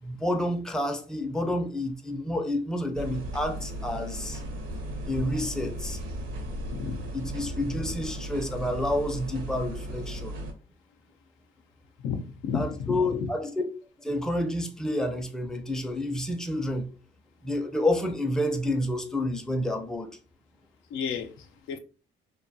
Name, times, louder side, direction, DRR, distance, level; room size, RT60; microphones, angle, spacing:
voice 1, 0.0-4.4 5.1-6.0 7.1-10.4 12.5-13.6 14.0-16.9 17.4-20.1, left 1 dB, 5° left, 0.4 m, -29 dB
sound 1, 2.9-10.5, right 1 dB, 80° right, 0.7 m, -36 dB
voice 2, 6.7-7.1 12.0-13.0 20.9-21.8, left 6 dB, 90° left, 0.5 m, -32 dB
2.6 x 2.3 x 2.6 m
cardioid pair, 90°, 20 cm